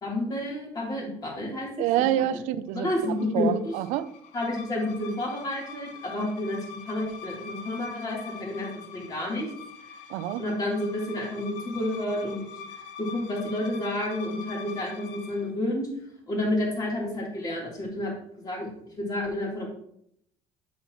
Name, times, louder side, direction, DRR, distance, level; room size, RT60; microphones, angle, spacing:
voice 1, 0.0-1.8 2.2-2.3 2.7-3.7 4.3-9.5 10.4-12.4 12.8-15.9 16.3-18.1 18.4-18.7 19.0-19.7, left 1 dB, 30° left, -3 dB, 3.3 m, -30 dB
voice 2, 1.8-4.1 10.1-10.4, right 12 dB, 75° right, 15 dB, 0.5 m, -27 dB
sound 1, 2.8-15.5, left 5 dB, 75° left, 0.8 m, -44 dB
8.3 x 7.1 x 3.0 m, 0.72 s
cardioid pair, 120°, 12 cm